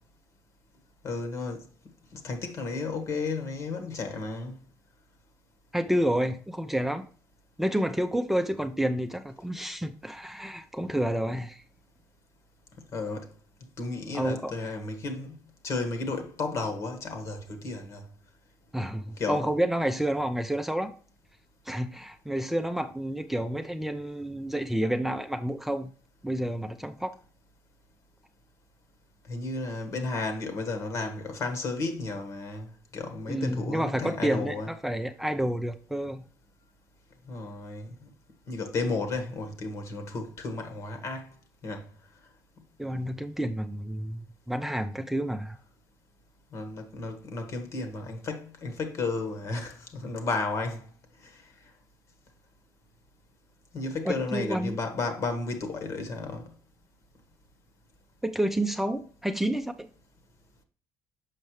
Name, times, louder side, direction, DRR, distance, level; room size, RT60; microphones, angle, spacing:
voice 1, 1.0-1.6 2.1-4.6 12.9-13.3 13.8-15.4 15.6-18.0 19.2-19.5 29.3-34.7 37.3-38.1 38.5-41.3 41.6-41.9 46.5-50.9 51.2-51.4 53.7-56.5, left 3 dB, 55° left, 1.5 m, -33 dB
voice 2, 5.7-7.1 7.6-11.6 14.1-14.5 18.7-20.9 21.7-25.9 26.2-27.2 33.3-36.2 42.8-45.6 54.0-54.8 58.2-59.9, right 1 dB, 5° right, 0.5 m, -29 dB
6.6 x 5.3 x 3.2 m
cardioid pair, 95°, 6 cm